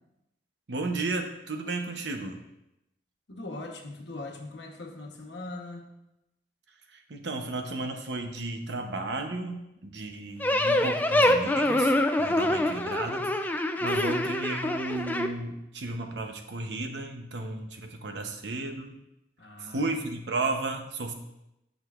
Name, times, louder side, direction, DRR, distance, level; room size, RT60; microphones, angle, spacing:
voice 1, 0.7-2.4 6.9-19.0 19.6-21.1, right 2 dB, 85° right, 5 dB, 0.9 m, -34 dB
voice 2, 3.3-5.9 12.4-12.8 19.4-19.9, left 2 dB, 85° left, 2 dB, 1.1 m, -41 dB
sound 1, 10.4-15.3, left 1 dB, 10° left, 0.3 m, -25 dB
11.0 x 6.5 x 2.5 m, 0.88 s
head